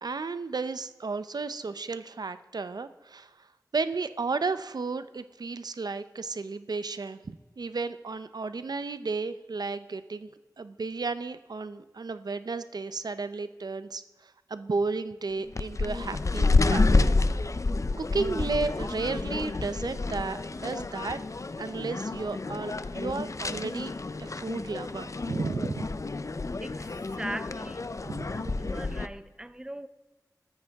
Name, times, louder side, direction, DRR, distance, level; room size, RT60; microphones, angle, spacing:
voice 1, 0.0-3.3 3.7-10.3 10.6-16.9 18.0-21.2 21.6-23.9 24.2-25.9 28.0-28.4, right 4 dB, 80° right, 0.6 m, -33 dB
sound 1, 15.5-29.1, left 3 dB, 50° left, 0.5 m, -29 dB
voice 2, 26.6-27.9 28.6-29.9, right 1 dB, 10° right, 0.6 m, -39 dB
14.5 x 13.5 x 3.5 m
wide cardioid pair, 70°, 7 cm